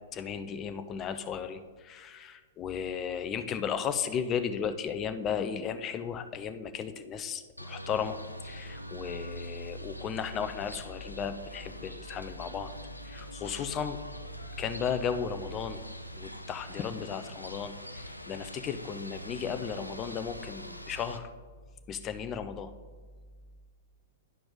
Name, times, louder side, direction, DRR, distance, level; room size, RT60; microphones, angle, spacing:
voice 1, 0.1-8.2 8.4-12.7 13.0-14.0 14.6-15.8 16.2-21.3 21.9-22.7, left 7 dB, 25° left, 9 dB, 0.5 m, -35 dB
sound 1, 7.6-21.2, equal, 90° left, 0.5 m, -43 dB
11.0 x 4.9 x 3.7 m, 1.5 s
figure-of-eight pair, 110°, 0 cm